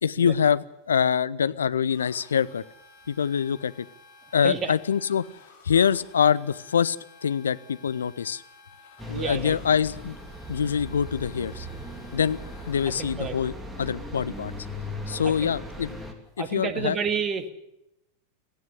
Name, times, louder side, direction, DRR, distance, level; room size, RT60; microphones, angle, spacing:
voice 1, 0.0-2.6 3.1-3.9 4.3-5.3 5.6-7.0 7.2-8.4 9.1-10.2 10.5-11.7 12.1-12.4 12.7-13.5 13.8-14.5 15.1-15.9 16.4-17.0, left 7 dB, 70° left, 16 dB, 0.7 m, -24 dB
sound 1, 1.9-13.0, left 4 dB, 50° left, 5.5 m, -53 dB
sound 2, 9.0-16.1, equal, 10° right, 3.0 m, -38 dB
voice 2, 9.1-9.6 13.0-13.4 15.4-15.5 16.4-17.5, right 6 dB, 25° right, 10 dB, 1.9 m, -30 dB
18.0 x 15.5 x 9.9 m, 0.86 s
figure-of-eight pair, 90°, 0 cm